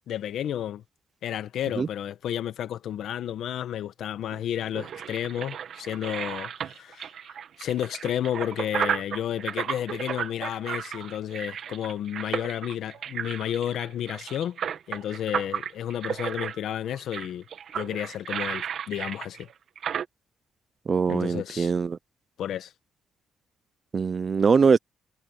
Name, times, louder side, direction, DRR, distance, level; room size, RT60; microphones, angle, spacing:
voice 1, 0.1-0.8 1.2-7.1 7.6-14.6 14.9-17.4 17.7-19.5 21.1-21.7 22.4-22.7, left 10 dB, 75° left, 1.3 m, -31 dB
sound 1, 4.3-20.1, right 8 dB, 65° right, 1.9 m, -34 dB
voice 2, 20.9-22.0 23.9-24.8, right 5 dB, 40° right, 0.7 m, -22 dB
cardioid pair, 90°, 0 cm